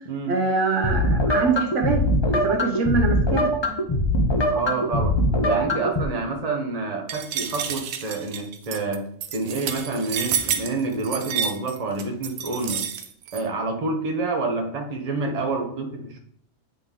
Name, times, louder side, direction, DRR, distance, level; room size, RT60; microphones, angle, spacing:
voice 1, 0.3-2.0 2.4-3.4, right 4 dB, 65° right, 3 dB, 1.1 m, -23 dB
sound 1, 0.8-6.0, left 1 dB, 30° left, 0.5 m, -22 dB
voice 2, 4.5-5.1 5.4-9.0 9.3-12.8 13.3-16.2, right 3 dB, 30° right, 2 dB, 1.0 m, -28 dB
sound 2, 7.1-13.4, right 8 dB, 85° right, 1.1 m, -29 dB
8.6 x 3.8 x 3.6 m, 0.66 s
omnidirectional pair, 1.4 m